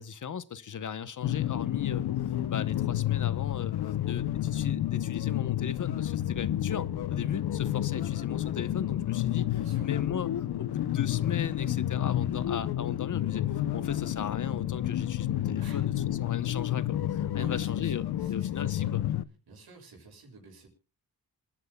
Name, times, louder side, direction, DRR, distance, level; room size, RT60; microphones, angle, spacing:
voice 1, 0.0-2.0 2.5-3.7 4.1-9.5 9.8-13.4 13.7-15.9 16.2-19.0, left 8 dB, 55° left, 0.9 m, -37 dB
sound 1, 1.2-19.2, left 12 dB, 85° left, 0.7 m, -30 dB
voice 2, 9.5-9.9 15.6-15.9 17.4-18.9 19.5-20.7, right 3 dB, 80° right, 6.7 m, -50 dB
27.0 x 10.5 x 2.2 m
cardioid pair, 90°, 37 cm